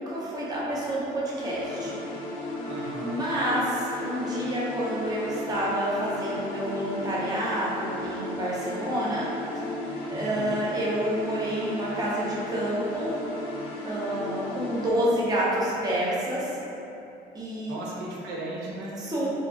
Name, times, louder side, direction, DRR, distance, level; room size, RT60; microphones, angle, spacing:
voice 1, 0.0-2.0 3.0-9.3 9.9-13.1 13.8-16.6 17.3-17.8 19.0-19.4, right 1 dB, 20° right, -7 dB, 0.6 m, -28 dB
sound 1, 1.3-14.9, left 2 dB, 90° left, 0.6 m, -35 dB
voice 2, 2.6-3.2 10.1-10.6 17.7-19.0, right 1 dB, 90° right, -4 dB, 0.5 m, -36 dB
2.9 x 2.4 x 2.2 m, 2.8 s
cardioid pair, 110°, 17 cm